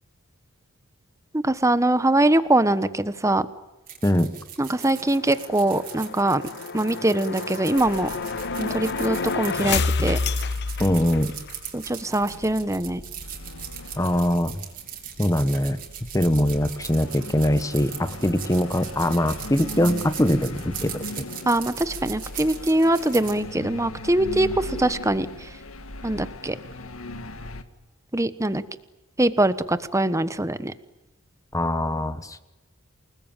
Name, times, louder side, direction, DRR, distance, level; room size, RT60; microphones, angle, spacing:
voice 1, 1.3-3.5 4.6-6.4 6.7-8.1 8.6-10.2 11.7-13.0 21.5-25.3 26.0-26.5 28.1-28.6 29.2-30.7, right 1 dB, 15° right, 13 dB, 1.2 m, -22 dB
sound 1, 3.9-23.4, right 9 dB, 40° right, 5.0 m, -39 dB
sound 2, 4.8-11.6, left 4 dB, 55° left, 0.9 m, -29 dB
sound 3, 7.8-27.6, left 1 dB, 80° left, 1.8 m, -39 dB
voice 2, 10.8-11.3 14.0-14.6 15.2-15.8 16.1-21.2 31.5-32.4, left 1 dB, 15° left, 12 dB, 1.2 m, -22 dB
28.5 x 20.0 x 9.1 m, 1.0 s
head